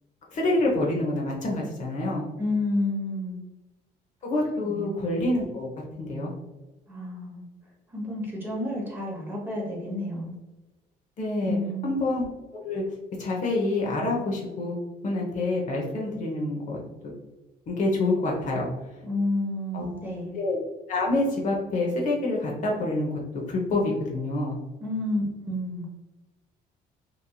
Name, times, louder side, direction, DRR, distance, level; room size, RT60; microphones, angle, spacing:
voice 1, 0.3-2.3 4.2-5.7 6.0-6.3 11.2-11.6 11.8-12.2 12.6-12.8 13.2-14.8 15.0-16.8 17.7-18.7 19.7-19.9 20.3-20.6 20.9-24.6, left 2 dB, 45° left, -2 dB, 0.7 m, -27 dB
voice 2, 2.4-3.4 4.6-4.9 6.9-7.4 7.9-10.3 11.5-12.0 19.1-20.3 24.8-25.8, left 1 dB, 10° right, -3 dB, 0.9 m, -30 dB
3.0 x 2.5 x 2.3 m, 1.1 s
cardioid pair, 110°, 17 cm